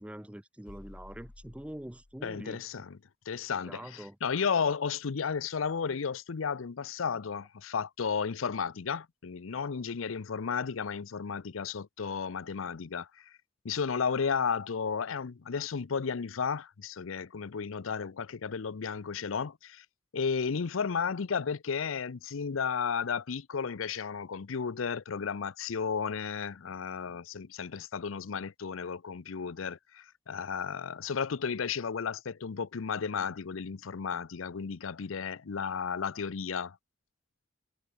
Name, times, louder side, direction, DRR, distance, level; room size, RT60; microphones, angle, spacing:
voice 1, 0.0-2.6 3.6-4.2, right 1 dB, 5° right, 0.6 m, -44 dB
sound 1, 0.7-2.5, left 2 dB, 45° left, 0.9 m, -52 dB
voice 2, 2.2-3.0 3.3-13.3 13.6-19.8 20.1-36.8, left 6 dB, 85° left, 0.6 m, -33 dB
head